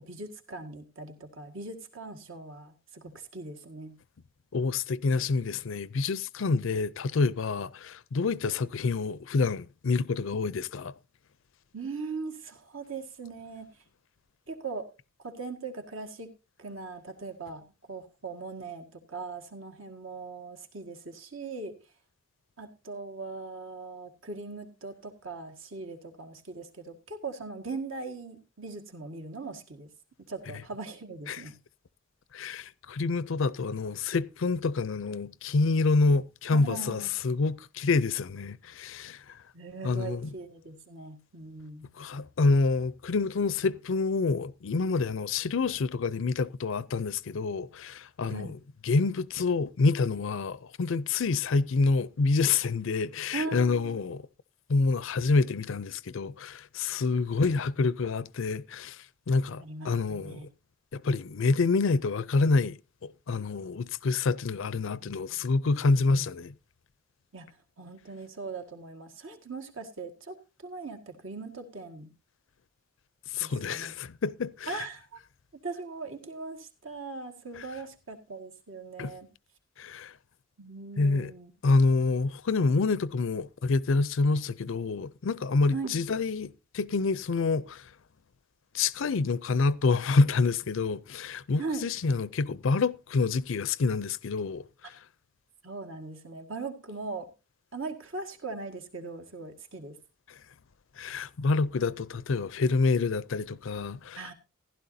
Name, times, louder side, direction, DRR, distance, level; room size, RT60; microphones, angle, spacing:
voice 1, 0.0-4.0 11.7-13.7 14.5-14.9 15.2-16.3 16.6-21.8 22.6-29.9 30.3-31.5 36.5-37.1 39.5-41.9 48.3-48.5 53.3-54.0 59.6-60.5 64.8-65.4 67.3-72.1 73.4-74.0 74.7-75.2 75.6-79.3 80.6-81.5 85.7-86.0 91.6-91.9 95.6-97.3 97.7-100.0 104.2-104.3, right 3 dB, 65° right, 1.8 m, -40 dB
voice 2, 4.5-10.9 31.3-31.4 32.3-39.4 39.8-40.3 42.0-54.3 54.7-60.5 60.9-66.5 73.3-74.8 77.6-77.7 79.0-79.1 79.8-80.1 81.0-81.3 81.6-87.9 88.7-95.0 100.3-100.4 101.0-104.3, left 4 dB, 65° left, 0.5 m, -27 dB
15.5 x 11.5 x 2.7 m
head